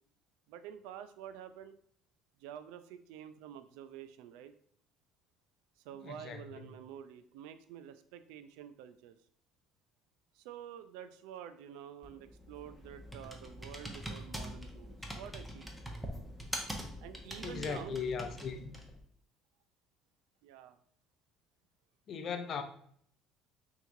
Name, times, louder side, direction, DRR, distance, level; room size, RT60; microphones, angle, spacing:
voice 1, 0.5-1.7 2.4-4.5 5.8-9.2 10.3-15.7 17.0-18.0 20.4-20.8, right 10 dB, 85° right, 0.4 m, -48 dB
voice 2, 6.0-6.6 17.4-18.8 22.1-22.6, left 6 dB, 50° left, 0.6 m, -38 dB
Computer keyboard, 12.0-19.0, equal, 5° right, 0.8 m, -44 dB
5.6 x 3.0 x 2.7 m
supercardioid pair, 100°, 0 cm